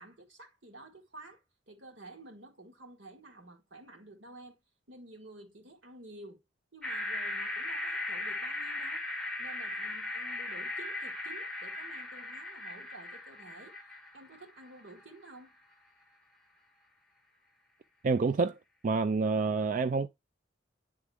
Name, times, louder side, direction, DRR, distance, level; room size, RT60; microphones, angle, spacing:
voice 1, 0.0-4.6 4.9-6.4 6.7-9.0 9.4-13.7 14.1-15.5, right 2 dB, 90° right, 2.0 m, -51 dB
sound 1, 6.8-15.0, left 2 dB, 5° left, 1.4 m, -38 dB
voice 2, 18.0-18.6 18.8-20.1, right 4 dB, 45° right, 0.3 m, -27 dB
9.5 x 3.7 x 3.5 m
head